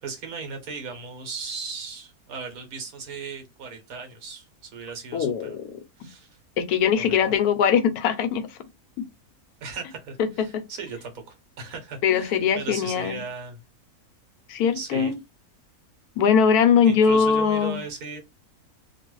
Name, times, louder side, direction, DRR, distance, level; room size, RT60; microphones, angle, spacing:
voice 1, 0.0-5.6 6.0-6.4 7.0-7.3 9.6-13.6 14.7-15.1 16.9-18.2, right 5 dB, 70° right, 1.3 m, -37 dB
voice 2, 5.1-5.8 6.6-8.6 10.5-10.6 12.0-13.2 14.5-15.2 16.2-17.8, left 7 dB, 80° left, 1.1 m, -21 dB
3.0 x 2.3 x 3.0 m
omnidirectional pair, 1.6 m